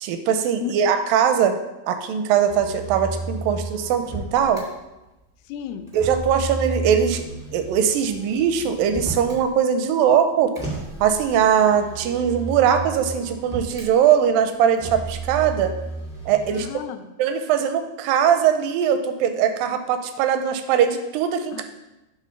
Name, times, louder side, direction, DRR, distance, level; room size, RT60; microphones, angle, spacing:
voice 1, 0.0-1.6 1.9-4.7 5.9-7.3 7.5-10.5 11.0-15.7 16.3-16.7 17.2-21.6, right 8 dB, 85° right, 8 dB, 2.0 m, -20 dB
Motor vehicle (road), 2.5-4.6 5.9-9.5 10.5-13.9 14.8-16.7, right 3 dB, 5° right, 0.4 m, -33 dB
voice 2, 5.5-5.9 16.5-17.1 21.5-21.6, left 10 dB, 85° left, 8 dB, 2.5 m, -33 dB
8.2 x 3.7 x 5.7 m, 1.0 s
omnidirectional pair, 4.4 m